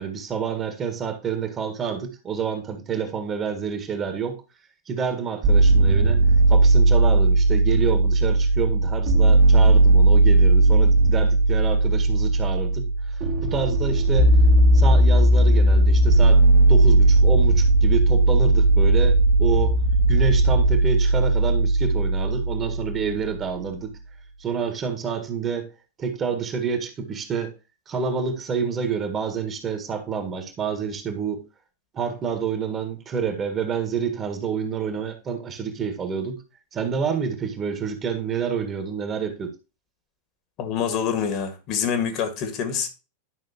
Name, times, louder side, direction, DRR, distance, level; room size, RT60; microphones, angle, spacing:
voice 1, 0.0-4.4 4.9-6.2 6.5-14.4 14.7-16.4 16.7-19.8 20.1-23.9 24.4-25.7 26.0-27.5 27.9-31.4 31.9-36.4 36.7-39.5, right 6 dB, 25° right, 1.7 m, -28 dB
sound 1, 5.4-23.4, right 2 dB, 40° right, 1.6 m, -17 dB
voice 2, 40.6-42.9, left 7 dB, 40° left, 1.8 m, -26 dB
11.0 x 5.9 x 3.0 m
figure-of-eight pair, 90°, 0 cm